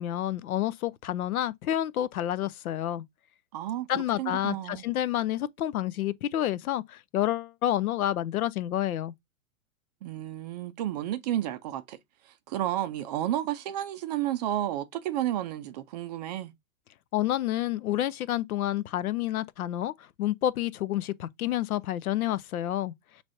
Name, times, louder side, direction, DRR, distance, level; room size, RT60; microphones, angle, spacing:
voice 1, 0.0-3.0 3.9-9.1 17.1-19.9 20.2-22.9, left 12 dB, 75° left, 0.6 m, -29 dB
voice 2, 3.5-3.9 4.2-4.8 10.0-12.0 12.5-16.5, right 12 dB, 30° right, 0.4 m, -31 dB
6.1 x 3.2 x 2.6 m
hypercardioid pair, 120°, 43 cm